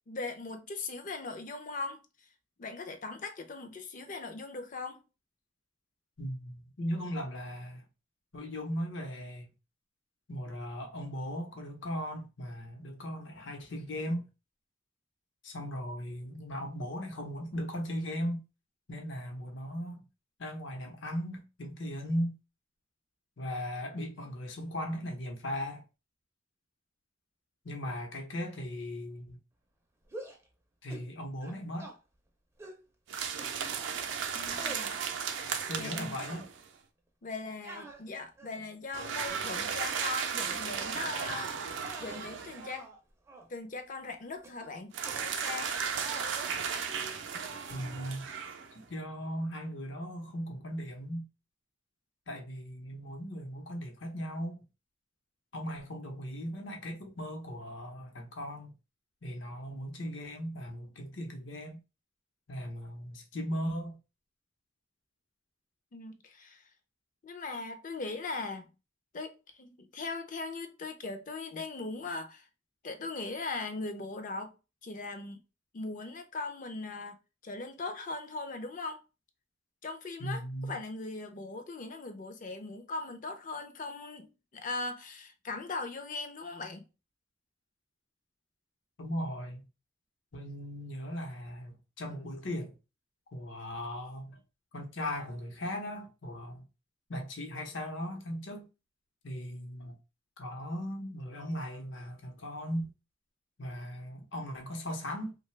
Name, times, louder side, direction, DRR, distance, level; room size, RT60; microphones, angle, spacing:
voice 1, 0.0-2.0 2.6-5.0 34.3-35.0 35.8-36.2 37.2-42.9 43.5-45.7 65.9-66.6 67.2-68.7 69.1-72.4 72.8-74.6 74.8-75.4 75.7-77.2 77.4-79.0 79.8-86.9, left 3 dB, 45° left, 0.5 m, -39 dB
voice 2, 6.2-7.8 8.3-9.5 10.3-14.3 15.4-18.4 18.9-20.1 20.4-22.4 23.4-25.8 27.6-29.4 30.8-31.9 35.7-36.5 47.7-48.3 48.9-51.3 52.3-54.6 55.5-58.8 59.2-61.8 62.5-64.0 80.2-80.7 89.0-89.7 90.3-92.8 93.3-94.4 94.7-96.7 97.1-98.7 99.2-100.0 100.4-102.9 103.6-105.4, equal, 75° left, 0.8 m, -38 dB
sound 1, 30.0-30.5 30.9-31.1 31.4-32.0 32.6-32.8 33.4-34.0 34.5-34.9 35.4-36.0 36.2-36.5 37.6-38.7 39.3-39.7 40.4-40.6 41.0-41.2 41.7-43.0 43.3-43.5 44.4-44.7 45.0-45.7 46.0-46.3, right 2 dB, 15° right, 0.5 m, -47 dB
sound 2, 33.1-36.7 38.9-42.8 44.9-48.8, right 6 dB, 70° right, 0.4 m, -35 dB
2.7 x 2.2 x 3.1 m
head